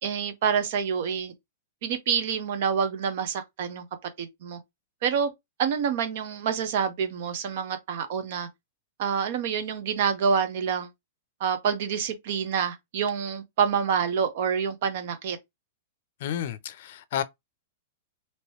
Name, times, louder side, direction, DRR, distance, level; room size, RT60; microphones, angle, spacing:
voice 1, 0.0-1.3 1.8-3.9 4.2-4.6 5.0-5.3 5.6-8.5 9.0-10.9 11.4-15.4, right 7 dB, 55° right, 0.9 m, -27 dB
voice 2, 16.2-17.2, left 10 dB, 55° left, 0.5 m, -31 dB
3.0 x 3.0 x 2.9 m
supercardioid pair, 155°, 0 cm